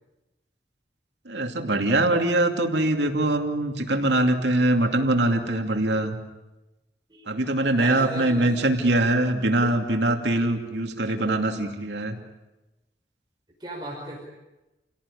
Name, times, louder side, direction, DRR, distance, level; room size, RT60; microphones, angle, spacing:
voice 1, 1.3-6.2 7.3-12.1, right 1 dB, 85° right, 4 dB, 2.7 m, -23 dB
voice 2, 7.7-8.5 13.6-14.2, right 1 dB, 25° right, -3 dB, 5.4 m, -36 dB
29.5 x 17.5 x 10.0 m, 1.0 s
head